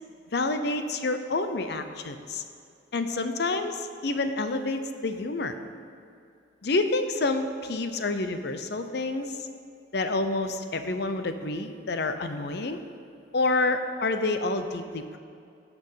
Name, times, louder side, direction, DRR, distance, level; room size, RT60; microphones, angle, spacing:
voice 1, 0.3-2.4 2.9-5.5 6.6-9.4 9.9-12.8 13.3-15.2, left 2 dB, 55° left, 8 dB, 0.6 m, -28 dB
17.0 x 6.0 x 5.6 m, 2.4 s
head